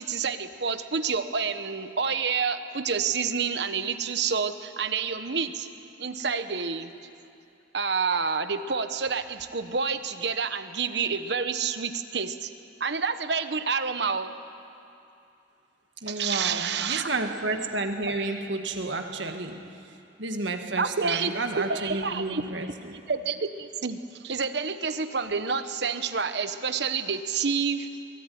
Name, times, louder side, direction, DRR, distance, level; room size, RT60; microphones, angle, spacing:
voice 1, 0.0-5.7 6.0-6.9 7.7-12.5 12.8-14.4 16.1-17.1 20.8-21.3 21.6-22.7 23.1-27.9, right 5 dB, 70° right, 10 dB, 1.1 m, -28 dB
voice 2, 16.0-23.0, right 2 dB, 90° right, 5 dB, 1.9 m, -31 dB
23.5 x 18.0 x 9.4 m, 2.7 s
head